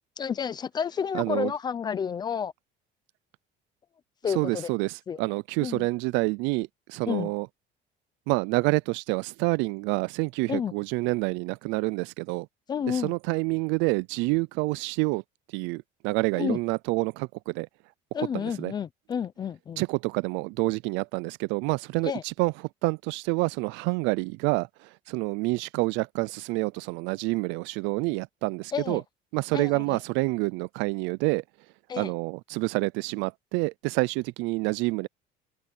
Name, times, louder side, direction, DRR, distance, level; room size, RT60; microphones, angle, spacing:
voice 1, 0.2-2.5 4.2-4.7 5.1-5.2 5.6-5.9 7.1-7.3 10.5-10.7 12.7-13.1 16.4-16.6 18.1-19.8 22.0-22.2 28.7-29.0 29.5-30.0 31.9-32.1, left 7 dB, 25° left, 0.5 m, -30 dB
voice 2, 1.1-1.5 4.4-7.5 8.3-12.5 12.9-15.2 15.5-17.7 18.3-18.7 19.8-22.5 22.8-29.0 29.3-31.4 32.0-35.1, right 25 dB, 85° right, 0.4 m, -28 dB
open air
cardioid pair, 180°, 19 cm